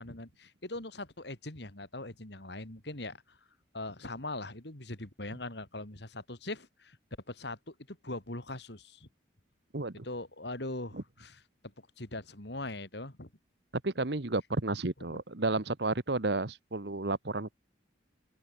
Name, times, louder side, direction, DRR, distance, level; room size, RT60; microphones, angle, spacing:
voice 1, 0.0-3.4 3.7-7.0 7.3-9.1 10.0-11.4 11.8-13.3 15.1-15.2, left 2 dB, 60° left, 3.1 m, -41 dB
voice 2, 9.7-10.0 10.9-11.0 13.8-17.5, right 2 dB, 60° right, 1.3 m, -32 dB
open air
head